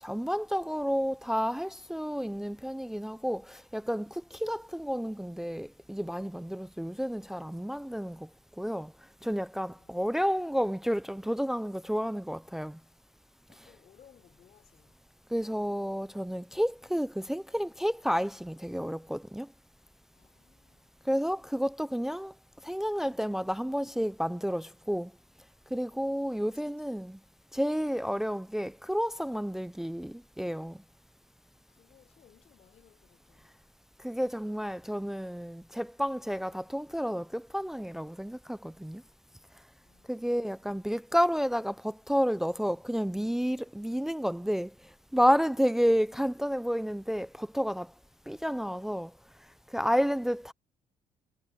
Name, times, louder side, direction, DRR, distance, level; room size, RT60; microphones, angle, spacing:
voice 1, 0.0-8.3 8.6-8.9 9.2-12.8 15.3-19.5 21.0-22.3 22.6-25.1 25.7-27.2 27.5-30.8 34.0-39.0 40.1-47.9 48.3-49.1 49.7-50.5, equal, 5° right, 0.6 m, -31 dB
voice 2, 13.5-15.0 20.1-20.9 26.1-26.9 31.5-33.6 39.8-40.7, left 10 dB, 55° left, 4.5 m, -63 dB
cardioid pair, 135°, 13 cm